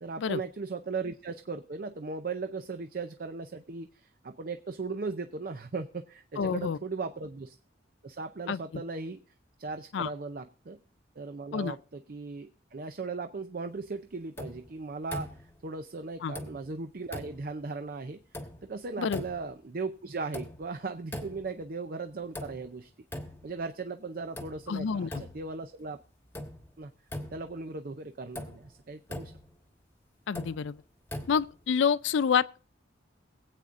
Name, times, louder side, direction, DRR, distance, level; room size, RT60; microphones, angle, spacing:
voice 1, 0.0-7.6 8.0-9.2 9.6-10.8 11.2-18.2 18.6-22.9 23.4-26.0 26.8-26.9 27.3-29.3, right 4 dB, 50° right, 0.5 m, -37 dB
voice 2, 6.4-6.8 8.5-8.8 9.9-10.1 11.5-11.8 16.2-16.3 19.0-19.2 24.7-25.2 30.3-30.8 31.3-32.6, left 6 dB, 75° left, 0.4 m, -28 dB
sound 1, 14.4-14.7 15.1-15.6 16.3-16.8 17.1-17.6 18.3-18.8 19.1-19.6 20.3-20.8 21.1-21.7 22.3-22.8 23.1-23.6 24.4-24.7 25.1-25.6 26.3-26.7 27.1-27.6 28.4-28.7 29.1-29.5 30.3-30.7 31.1-31.6, left 1 dB, 10° left, 1.2 m, -41 dB
22.5 x 8.4 x 2.5 m
head